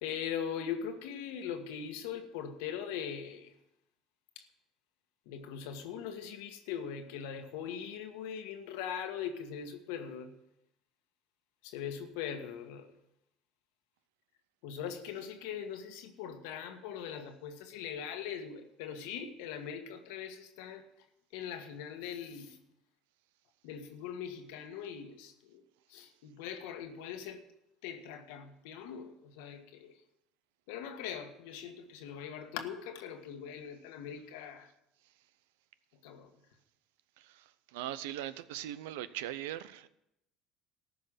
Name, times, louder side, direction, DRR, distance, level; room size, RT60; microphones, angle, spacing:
voice 1, 0.0-3.5 4.3-4.4 5.2-10.3 11.6-12.9 14.6-20.8 21.3-22.6 23.6-25.6 25.9-27.4 27.8-29.9 30.7-34.7 36.0-36.3, left 8 dB, 80° left, 1.5 m, -41 dB
voice 2, 37.2-39.9, right 12 dB, 85° right, 0.7 m, -40 dB
14.0 x 5.7 x 9.1 m
supercardioid pair, 85°, 0 cm